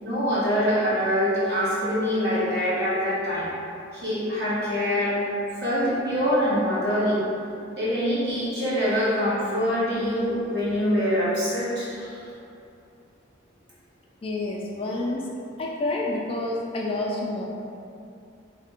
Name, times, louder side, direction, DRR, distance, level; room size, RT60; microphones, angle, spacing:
voice 1, 0.0-3.5 3.9-5.2 5.6-7.2 7.7-12.3, equal, 55° right, -11 dB, 1.4 m, -24 dB
voice 2, 14.2-15.3 15.6-17.4, left 2 dB, 30° left, -2 dB, 0.3 m, -28 dB
3.2 x 2.7 x 3.6 m, 2.6 s
head